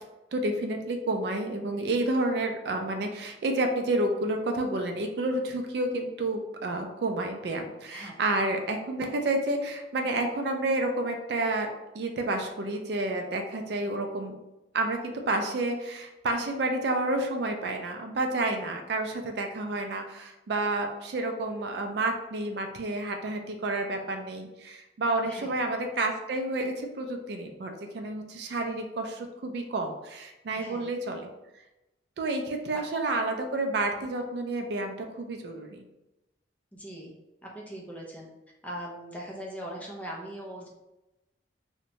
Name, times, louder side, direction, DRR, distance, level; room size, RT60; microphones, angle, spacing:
voice 1, 0.3-14.4 14.7-31.3 32.2-35.8, right 2 dB, 60° right, 4 dB, 0.3 m, -30 dB
voice 2, 25.2-25.6 30.5-30.9 32.7-32.8 36.7-37.1 37.4-38.3 38.6-40.7, right 1 dB, 10° left, -3 dB, 0.4 m, -40 dB
2.6 x 2.1 x 2.8 m, 0.98 s
head